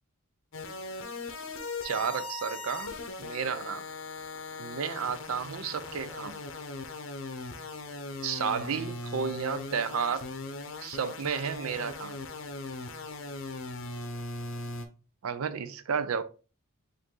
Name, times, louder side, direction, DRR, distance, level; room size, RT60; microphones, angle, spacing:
sound 1, 0.5-14.9, left 3 dB, 60° left, 0.7 m, -39 dB
voice 1, 1.8-3.9 4.6-6.4 8.2-10.3 10.8-12.2 15.2-16.2, right 6 dB, 75° right, 0.5 m, -32 dB
5.1 x 2.6 x 3.7 m
head